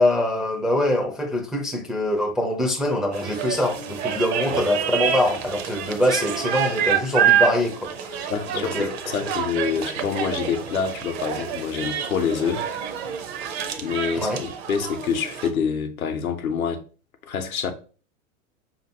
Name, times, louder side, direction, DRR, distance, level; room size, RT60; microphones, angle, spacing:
voice 1, 0.0-7.8 8.1-8.9 14.2-14.4, left 1 dB, ahead, 0.4 m, -24 dB
sound 1, 3.1-15.5, right 9 dB, 50° right, 0.6 m, -27 dB
voice 2, 8.3-12.7 13.8-16.8 17.2-17.7, left 6 dB, 85° left, 0.7 m, -26 dB
4.9 x 2.8 x 2.7 m
figure-of-eight pair, 95°, 41 cm